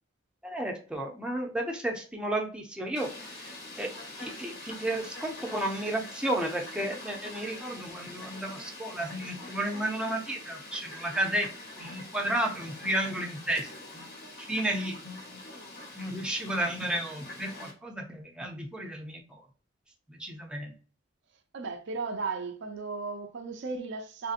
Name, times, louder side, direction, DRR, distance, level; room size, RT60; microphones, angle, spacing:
voice 1, 0.4-3.1 3.8-3.9 4.2-11.5 11.8-13.7 13.9-14.1 14.4-15.4 16.0-19.4 20.1-20.7, right 1 dB, 5° right, 0.5 m, -32 dB
Fowl, 3.0-17.7, left 1 dB, 50° left, 1.1 m, -44 dB
voice 2, 21.5-24.3, right 4 dB, 65° right, 0.5 m, -35 dB
3.3 x 2.7 x 2.4 m
head